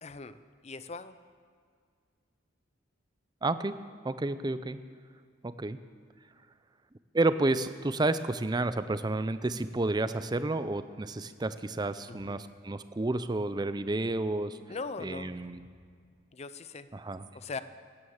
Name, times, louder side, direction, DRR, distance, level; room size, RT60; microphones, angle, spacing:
voice 1, 0.0-1.2 12.1-12.5 14.7-15.4 16.3-16.9 17.3-17.6, left 4 dB, 35° left, 13 dB, 0.5 m, -40 dB
voice 2, 3.4-3.8 4.0-4.8 5.4-5.8 7.1-14.6 15.0-15.6 16.9-17.2, right 2 dB, 20° right, 12 dB, 0.5 m, -30 dB
16.5 x 9.7 x 7.2 m, 2.1 s
head